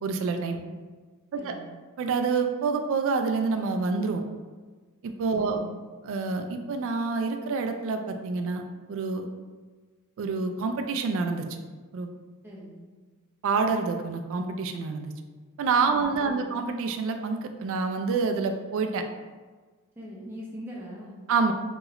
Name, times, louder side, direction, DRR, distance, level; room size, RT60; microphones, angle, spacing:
voice 1, 0.0-0.6 1.3-1.6 2.0-4.2 5.0-5.6 6.0-8.6 8.9-9.3 10.2-11.6 11.9-12.1 13.4-15.1 15.6-19.0 21.3-21.5, right 4 dB, 60° right, 6 dB, 0.3 m, -27 dB
voice 2, 1.4-1.7 5.4-5.7 12.4-12.8 15.9-16.5 20.0-21.2, equal, 10° right, -5 dB, 0.6 m, -42 dB
2.9 x 2.8 x 2.4 m, 1.4 s
head